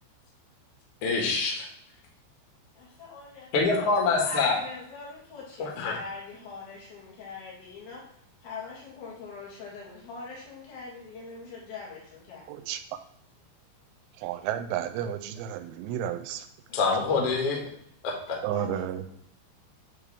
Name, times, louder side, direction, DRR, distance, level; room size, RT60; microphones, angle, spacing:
voice 1, 1.0-1.7 3.5-4.6 5.6-6.0 16.7-17.6 18.0-18.4, left 4 dB, 90° left, -1 dB, 1.3 m, -25 dB
voice 2, 2.7-3.5 4.1-8.0 8.4-12.4 18.5-18.8, left 4 dB, 50° left, -5 dB, 3.2 m, -42 dB
voice 3, 12.5-12.8 14.2-16.5 18.4-19.0, right 11 dB, 85° right, 8 dB, 3.0 m, -32 dB
9.4 x 3.7 x 3.4 m, 0.70 s
omnidirectional pair, 5.4 m